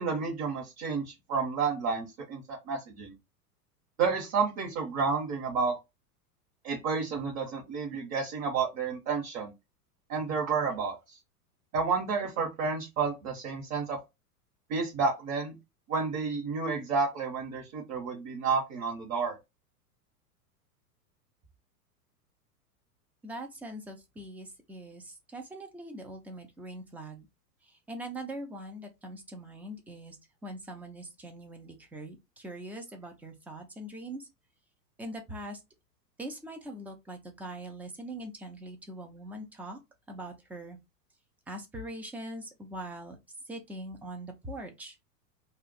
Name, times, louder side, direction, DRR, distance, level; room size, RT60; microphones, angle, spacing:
voice 1, 0.0-3.1 4.0-5.8 6.6-9.5 10.1-11.2 11.7-14.0 14.7-15.5 15.9-19.4, right 5 dB, 35° right, 1.2 m, -30 dB
voice 2, 23.2-27.3 27.6-30.2 30.4-34.3 35.0-35.6 36.2-39.8 40.1-40.8 41.5-43.2 43.5-45.0, right 1 dB, 5° right, 0.4 m, -42 dB
2.5 x 2.4 x 3.9 m
figure-of-eight pair, 95°, 47 cm